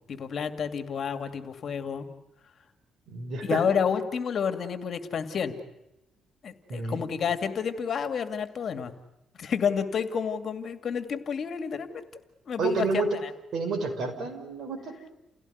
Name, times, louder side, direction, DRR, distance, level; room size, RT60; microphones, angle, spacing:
voice 1, 0.1-2.1 3.4-5.5 6.4-8.9 9.4-11.9 12.4-13.3, left 7 dB, 50° left, 8 dB, 2.3 m, -30 dB
voice 2, 3.1-3.6 6.7-7.2 12.6-13.1 13.5-15.0, right 4 dB, 60° right, 6 dB, 6.0 m, -30 dB
30.0 x 17.0 x 9.4 m, 0.89 s
cardioid pair, 110°, 0 cm